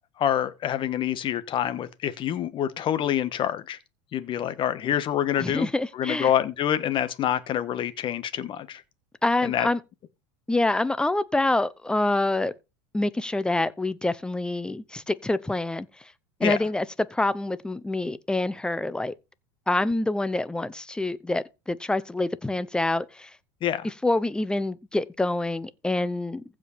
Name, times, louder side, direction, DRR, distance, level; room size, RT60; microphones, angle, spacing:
voice 1, 0.2-3.8 4.1-5.7 5.9-8.8 9.4-9.7 16.4-16.6 23.6-23.9, left 10 dB, 35° left, 1.4 m, -26 dB
voice 2, 5.4-6.3 9.2-9.8 10.5-12.5 12.9-15.9 16.4-16.9 17.1-19.1 19.7-23.3 24.0-26.4, left 2 dB, 5° left, 0.8 m, -26 dB
15.0 x 5.2 x 4.3 m
supercardioid pair, 130°, 14 cm